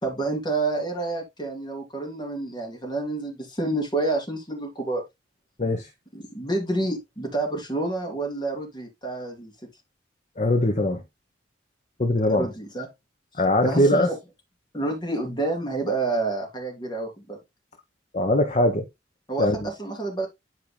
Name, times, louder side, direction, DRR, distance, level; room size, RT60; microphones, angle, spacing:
voice 1, 0.0-5.0 6.1-9.5 12.3-12.9 13.6-14.2 14.7-17.4 19.3-20.3, right 2 dB, 25° left, 3.1 m, -28 dB
voice 2, 5.6-5.9 10.4-11.0 12.0-12.5 13.4-14.1 18.1-18.9 19.4-19.7, left 1 dB, 40° left, 1.0 m, -21 dB
12.0 x 4.8 x 2.2 m
head